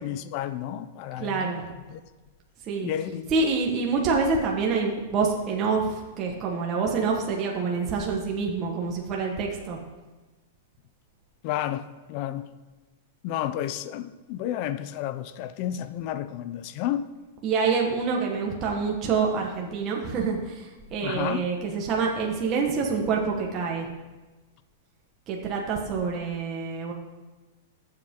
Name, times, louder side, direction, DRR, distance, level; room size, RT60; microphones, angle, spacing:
voice 1, 0.0-1.5 1.9-2.0 2.8-3.3 11.4-12.5 13.2-17.1 21.0-21.5, left 11 dB, 40° left, 13 dB, 0.6 m, -31 dB
voice 2, 1.2-1.6 2.6-2.9 3.3-9.8 17.4-23.9 25.3-26.9, right 4 dB, 25° right, -1 dB, 1.4 m, -26 dB
17.5 x 7.9 x 3.8 m, 1.2 s
supercardioid pair, 160°, 0 cm